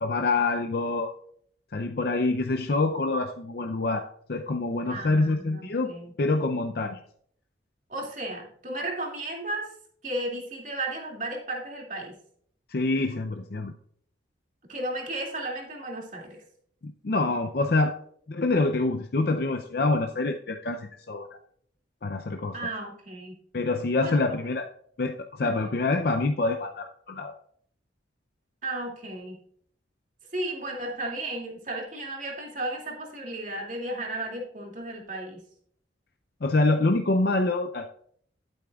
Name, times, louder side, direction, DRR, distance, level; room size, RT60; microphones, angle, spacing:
voice 1, 0.0-1.1 1.7-5.9 6.2-7.0 12.7-13.7 16.8-18.0 18.3-21.4 22.0-22.6 23.5-24.7 25.0-27.3 36.4-37.9, left 2 dB, 55° left, 5 dB, 0.5 m, -26 dB
voice 2, 4.9-6.1 7.9-9.7 10.0-12.1 14.7-16.4 22.5-23.4 24.0-24.2 25.4-25.7 28.6-29.4 30.3-35.4, right 1 dB, 45° right, 0 dB, 2.4 m, -34 dB
12.0 x 8.7 x 2.4 m, 0.64 s
head